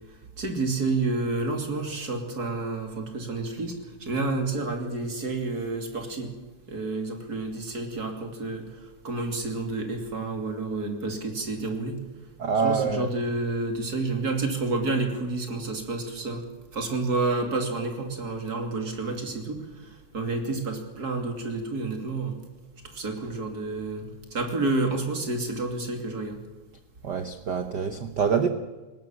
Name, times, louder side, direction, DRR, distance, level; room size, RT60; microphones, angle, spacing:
voice 1, 0.4-3.7 4.0-6.3 6.7-8.7 9.0-12.0 12.6-16.4 16.7-22.4 22.9-26.4, right 3 dB, 30° right, 4 dB, 3.1 m, -29 dB
voice 2, 12.4-13.1 27.0-28.5, right 6 dB, 75° right, 9 dB, 0.9 m, -25 dB
19.5 x 18.0 x 7.4 m, 1.3 s
omnidirectional pair, 3.4 m